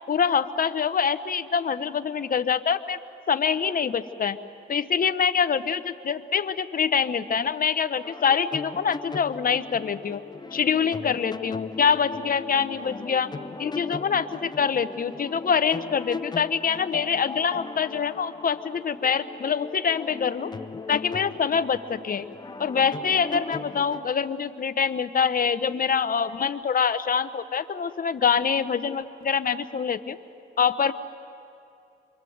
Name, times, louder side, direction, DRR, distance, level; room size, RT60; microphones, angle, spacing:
voice 1, 0.1-3.0 3.3-4.4 4.7-10.2 10.5-13.3 13.6-20.5 20.9-22.3 22.6-30.2 30.6-30.9, left 6 dB, 45° left, 11 dB, 1.0 m, -25 dB
sound 1, 8.0-24.1, left 4 dB, 20° left, 0.6 m, -38 dB
26.0 x 24.0 x 8.0 m, 2.7 s
cardioid pair, 95°, 20 cm